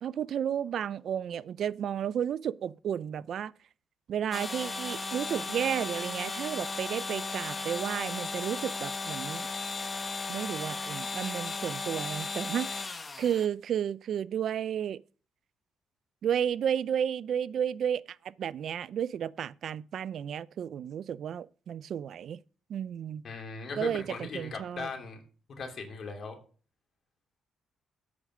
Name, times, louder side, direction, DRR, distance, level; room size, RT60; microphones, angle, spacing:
voice 1, 0.0-3.5 4.1-9.5 10.3-15.0 16.2-22.4 22.7-23.2 23.8-24.9, right 9 dB, 65° right, 0.4 m, -32 dB
sound 1, 4.3-13.5, left 3 dB, 30° left, 0.9 m, -36 dB
voice 2, 23.2-25.2 25.6-26.4, left 4 dB, 55° left, 3.1 m, -38 dB
8.6 x 4.9 x 7.4 m
cardioid pair, 90°, 0 cm